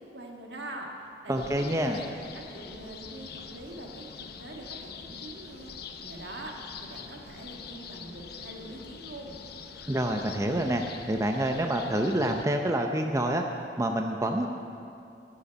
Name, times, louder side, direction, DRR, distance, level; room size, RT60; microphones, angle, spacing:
voice 1, 0.0-5.7 6.0-9.4, right 1 dB, 70° right, 1 dB, 1.8 m, -43 dB
sound 1, 1.3-12.4, left 5 dB, 65° left, 0.8 m, -44 dB
voice 2, 1.3-2.0 9.9-10.8 11.1-13.4 13.8-14.5, right 1 dB, 20° right, 3 dB, 0.6 m, -27 dB
12.5 x 7.0 x 9.2 m, 2.6 s
head